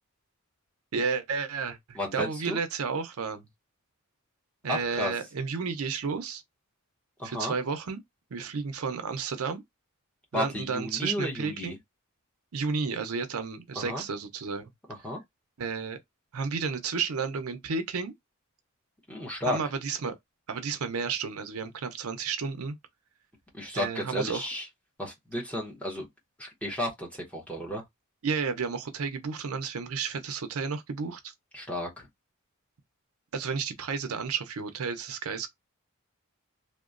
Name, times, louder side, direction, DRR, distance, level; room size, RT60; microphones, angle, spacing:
voice 1, 0.9-3.5 4.6-6.4 7.2-8.0 8.3-9.6 10.3-11.8 12.5-14.7 15.6-16.0 16.3-18.1 19.4-20.1 20.5-22.8 23.7-24.4 28.2-31.3 33.3-35.5, right 5 dB, 75° right, 0.6 m, -32 dB
voice 2, 1.9-2.6 4.7-5.1 7.2-7.5 10.3-11.8 13.7-14.0 15.0-15.2 19.1-19.6 23.5-24.7 25.0-26.1 26.4-27.8 31.5-32.1, left 1 dB, 5° left, 0.8 m, -33 dB
2.9 x 2.1 x 2.4 m
head